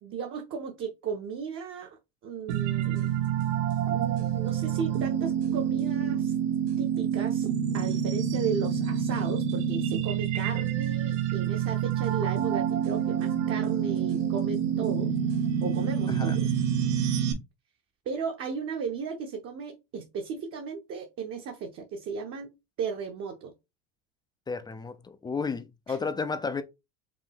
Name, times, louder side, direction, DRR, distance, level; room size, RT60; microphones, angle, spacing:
voice 1, 0.0-3.1 3.9-6.3 6.8-7.5 7.7-15.2 15.6-16.5 18.1-22.5 22.8-23.5 25.9-26.0, right 5 dB, 40° right, 0.8 m, -35 dB
sound 1, 2.5-17.3, right 8 dB, 90° right, 1.1 m, -27 dB
voice 2, 24.5-26.6, left 4 dB, 10° left, 0.4 m, -32 dB
5.0 x 2.6 x 3.6 m
supercardioid pair, 125°, 35 cm